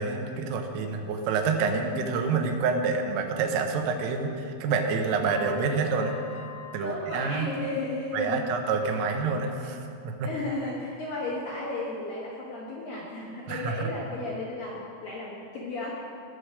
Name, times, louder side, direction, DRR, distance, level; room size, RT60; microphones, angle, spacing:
voice 1, 0.0-6.2 6.7-7.5 8.1-10.3 13.5-13.9, right 4 dB, 85° right, 4 dB, 3.6 m, -28 dB
sound 1, 5.2-6.8 7.2-7.8 8.2-8.4 8.9-9.0, left 8 dB, 90° left, 2.3 m, -47 dB
voice 2, 6.6-8.5 8.8-9.1 10.2-15.9, left 2 dB, 75° left, -5 dB, 2.1 m, -34 dB
19.0 x 6.5 x 4.9 m, 2.6 s
omnidirectional pair, 5.7 m